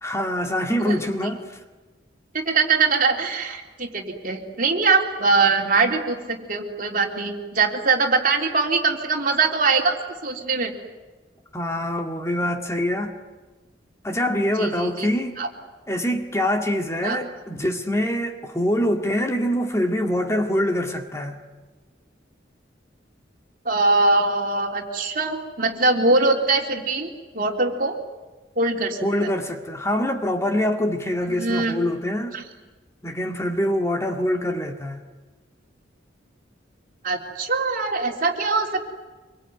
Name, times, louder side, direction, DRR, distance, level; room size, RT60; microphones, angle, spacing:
voice 1, 0.0-1.6 11.5-13.1 14.0-15.4 15.9-21.4 29.0-32.4 33.0-35.0, left 1 dB, 15° left, 4 dB, 2.0 m, -24 dB
voice 2, 2.3-10.7 14.6-15.1 15.4-15.5 17.0-17.2 23.7-27.1 27.3-28.0 28.6-29.3 31.4-31.7 32.3-32.4 37.0-38.9, right 3 dB, 50° right, 2 dB, 3.6 m, -22 dB
26.0 x 24.0 x 9.4 m, 1.2 s
head